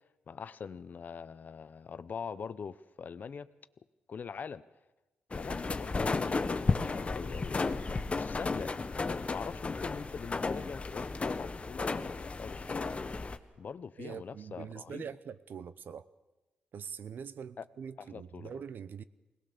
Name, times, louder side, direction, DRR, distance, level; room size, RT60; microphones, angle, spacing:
voice 1, 0.3-3.5 4.1-4.6 5.4-7.8 8.1-8.7 9.3-13.1 13.6-15.1 17.6-17.7 18.0-18.5, left 6 dB, 55° left, 0.7 m, -43 dB
sound 1, 5.3-13.4, left 3 dB, 35° left, 1.1 m, -33 dB
voice 2, 14.0-16.1 16.7-19.0, right 7 dB, 65° right, 0.7 m, -43 dB
21.0 x 18.5 x 6.9 m
supercardioid pair, 60°, 4 cm